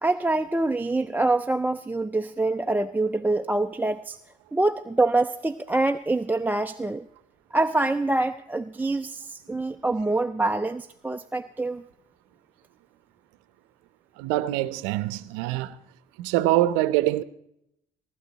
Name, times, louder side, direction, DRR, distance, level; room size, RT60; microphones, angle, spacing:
voice 1, 0.0-4.2 4.5-7.1 7.5-11.8, right 2 dB, 10° right, 0.5 m, -25 dB
voice 2, 14.2-15.8 16.2-17.2, right 15 dB, 85° right, 0.7 m, -24 dB
18.0 x 12.5 x 4.1 m
hypercardioid pair, 60°, 20 cm